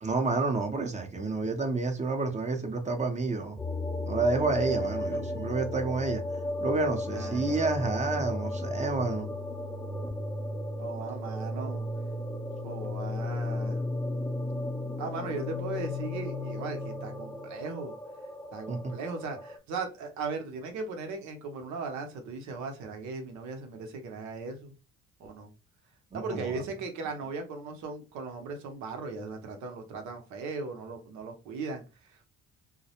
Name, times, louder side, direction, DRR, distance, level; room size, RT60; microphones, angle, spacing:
voice 1, 0.0-3.6 4.1-6.2 6.6-9.3 18.7-18.9 26.1-26.6, right 3 dB, 25° right, 0.7 m, -29 dB
sound 1, 3.6-19.6, left 1 dB, 10° left, 0.4 m, -34 dB
voice 2, 7.1-7.6 10.8-11.9 12.6-13.8 15.0-17.9 18.5-24.7 25.2-25.5 26.1-32.2, right 4 dB, 80° right, 0.8 m, -38 dB
2.2 x 2.0 x 2.8 m
supercardioid pair, 80°, 29 cm